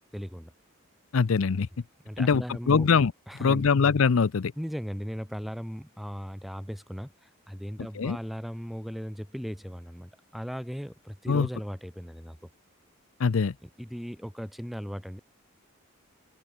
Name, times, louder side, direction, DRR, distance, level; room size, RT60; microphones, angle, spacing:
voice 1, 0.1-0.5 2.0-2.9 3.3-3.6 4.6-12.5 13.6-15.2, equal, ahead, 3.7 m, -37 dB
voice 2, 1.1-1.7 2.2-2.4 2.7-3.1 3.4-4.5 8.0-8.2 11.3-11.5 13.2-13.5, left 5 dB, 70° left, 0.5 m, -22 dB
head